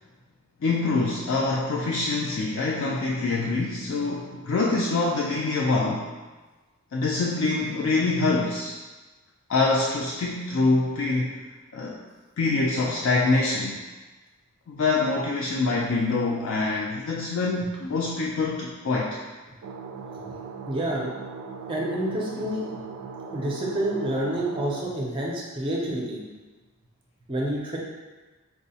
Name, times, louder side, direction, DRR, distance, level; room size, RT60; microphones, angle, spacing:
voice 1, 0.6-6.1 6.9-8.8 9.5-11.4 11.7-12.0 12.4-13.8 14.7-19.2, left 3 dB, 55° left, -3 dB, 0.3 m, -25 dB
sound 1, 19.6-24.8, right 5 dB, 85° right, 0.3 m, -39 dB
voice 2, 20.7-21.1 21.7-22.7 23.3-26.2 27.3-27.8, right 1 dB, 25° right, -4 dB, 0.5 m, -28 dB
4.4 x 2.0 x 2.7 m, 1.2 s
head